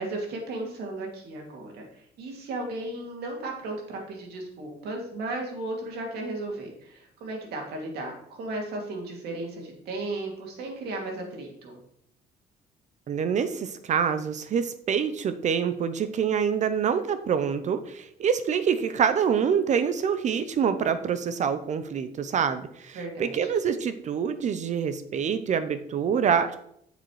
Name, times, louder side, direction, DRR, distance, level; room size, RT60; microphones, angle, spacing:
voice 1, 0.0-11.8 22.9-23.3, right 2 dB, 75° right, 1 dB, 2.4 m, -35 dB
voice 2, 13.1-26.6, right 7 dB, 45° right, 11 dB, 0.6 m, -26 dB
8.6 x 6.8 x 3.1 m, 0.72 s
cardioid pair, 110°, 17 cm